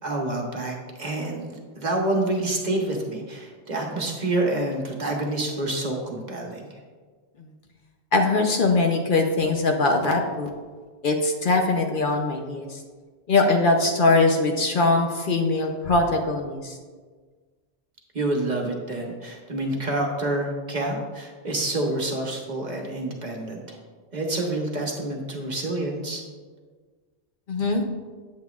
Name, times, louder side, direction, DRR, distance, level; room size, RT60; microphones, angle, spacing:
voice 1, 0.0-6.8 18.1-23.8 24.1-26.2, right 2 dB, 45° right, 0 dB, 1.0 m, -28 dB
voice 2, 8.1-10.5 11.0-12.8 13.3-16.8 27.5-27.8, left 3 dB, 55° left, 3 dB, 0.7 m, -21 dB
8.4 x 8.1 x 2.3 m, 1.5 s
omnidirectional pair, 1.1 m